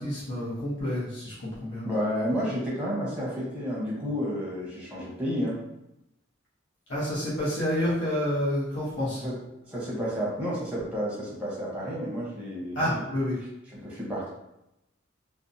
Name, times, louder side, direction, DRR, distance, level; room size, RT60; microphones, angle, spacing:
voice 1, 0.0-1.8 6.9-9.2 12.7-13.4, equal, 70° left, -9 dB, 0.8 m, -29 dB
voice 2, 1.8-5.6 9.2-9.4 9.6-13.0 13.7-14.3, equal, 5° right, -6 dB, 0.8 m, -31 dB
2.6 x 2.2 x 2.5 m, 0.87 s
head